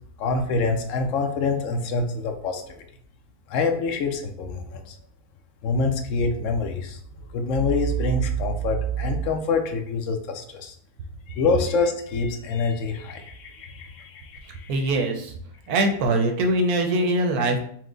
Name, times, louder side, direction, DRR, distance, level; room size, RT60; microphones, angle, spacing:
voice 1, 0.2-2.7 3.5-4.9 5.6-7.0 7.3-10.7 11.3-14.7, left 3 dB, 65° left, 5 dB, 0.8 m, -25 dB
voice 2, 14.7-15.3 15.7-17.6, right 1 dB, 75° right, 3 dB, 1.1 m, -22 dB
4.5 x 2.1 x 3.7 m, 0.62 s
omnidirectional pair, 1.7 m